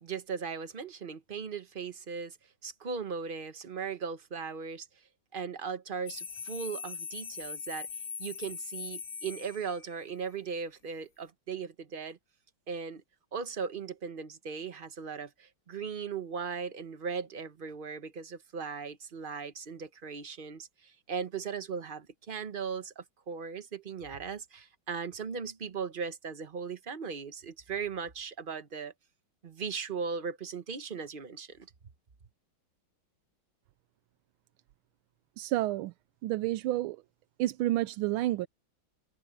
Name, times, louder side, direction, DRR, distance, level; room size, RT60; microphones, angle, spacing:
voice 1, 0.0-2.4 2.6-4.9 5.3-7.9 8.2-12.2 12.7-13.0 13.3-28.9 29.4-31.7, right 6 dB, 40° right, 0.8 m, -38 dB
sound 1, 6.1-10.1, left 6 dB, 55° left, 2.1 m, -41 dB
voice 2, 35.4-35.9 36.2-37.0 37.4-38.5, right 15 dB, 85° right, 1.4 m, -29 dB
omnidirectional pair, 2.2 m